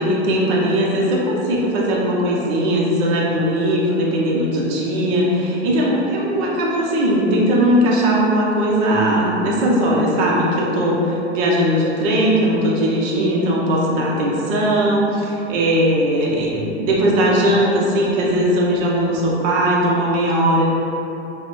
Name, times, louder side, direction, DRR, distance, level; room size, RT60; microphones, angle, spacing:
voice 1, 0.0-20.7, equal, 45° right, -4 dB, 0.8 m, -19 dB
3.9 x 2.3 x 3.1 m, 3.0 s
hypercardioid pair, 115°, 35 cm